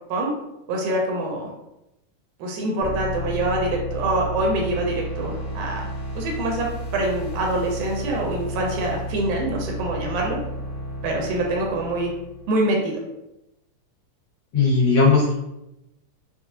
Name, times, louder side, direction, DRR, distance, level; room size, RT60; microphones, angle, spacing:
voice 1, 0.7-1.5 2.4-5.9 6.2-10.4 11.0-12.1 12.5-13.0, right 2 dB, 80° right, 0 dB, 2.1 m, -25 dB
sound 1, 2.8-12.6, equal, 80° left, 1.1 m, -32 dB
voice 2, 14.5-15.3, left 4 dB, 55° left, -8 dB, 1.9 m, -17 dB
6.2 x 2.1 x 2.6 m, 0.90 s
omnidirectional pair, 3.7 m